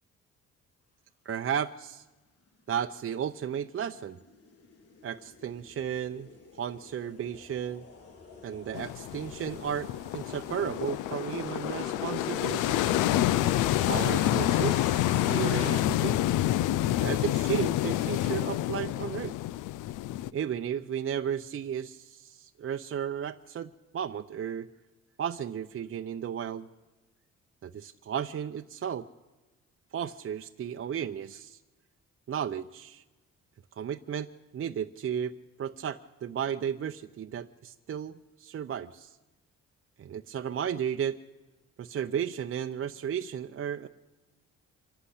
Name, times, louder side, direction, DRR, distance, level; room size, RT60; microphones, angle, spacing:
voice 1, 1.2-2.0 2.7-4.2 5.0-6.3 6.5-7.8 8.4-12.8 13.8-16.2 16.8-19.3 20.3-24.7 25.2-26.7 27.6-29.1 29.9-31.6 32.3-33.0 33.8-35.3 35.6-39.2 40.0-41.2 41.8-43.9, right 8 dB, 45° right, 7 dB, 0.7 m, -34 dB
sound 1, 2.6-15.8, left 4 dB, 50° left, 3.0 m, -49 dB
sound 2, 5.8-5.9 6.7-6.8 7.2-17.0, left 4 dB, 25° left, 3.7 m, -44 dB
sound 3, 8.7-20.3, left 14 dB, 90° left, 0.6 m, -28 dB
25.5 x 12.0 x 10.0 m, 1.2 s
cardioid pair, 90°, 30 cm